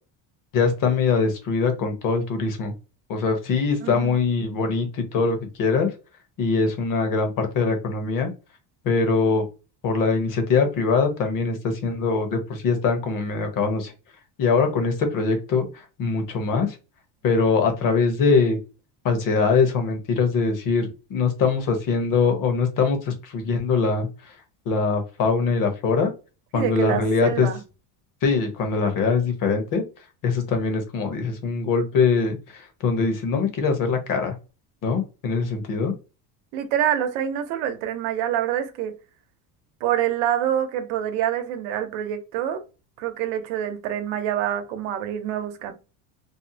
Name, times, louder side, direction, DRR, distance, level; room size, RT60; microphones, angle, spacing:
voice 1, 0.5-2.7 3.1-5.9 6.4-8.3 8.8-9.4 9.8-13.9 14.4-16.8 17.2-18.6 19.0-24.1 24.7-26.1 26.5-27.5 28.2-29.8 30.2-34.3 34.8-35.9, left 4 dB, 45° left, 0.8 m, -22 dB
voice 2, 3.8-4.2 26.5-27.6 36.5-38.9 39.8-42.6 43.0-45.7, right 10 dB, 85° right, 0.8 m, -26 dB
2.7 x 2.0 x 2.6 m
cardioid pair, 155°, 45 cm